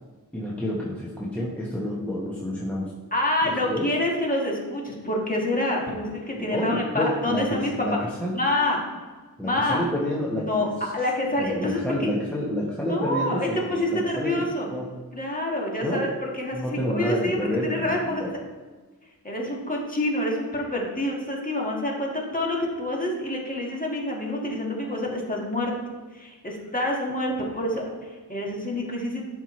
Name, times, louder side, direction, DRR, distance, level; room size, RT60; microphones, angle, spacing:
voice 1, 0.3-2.9 3.4-3.9 6.3-8.4 9.4-10.9 11.4-14.9 15.8-16.1 16.5-18.3, left 1 dB, 5° left, -5 dB, 1.0 m, -29 dB
voice 2, 3.1-8.0 8.3-8.8 9.4-9.8 10.4-12.1 12.9-14.7 15.1-17.4 17.6-18.3 19.2-25.7 26.1-29.3, left 1 dB, 20° left, -2 dB, 1.5 m, -27 dB
11.5 x 4.5 x 3.1 m, 1.3 s
wide cardioid pair, 110°, 38 cm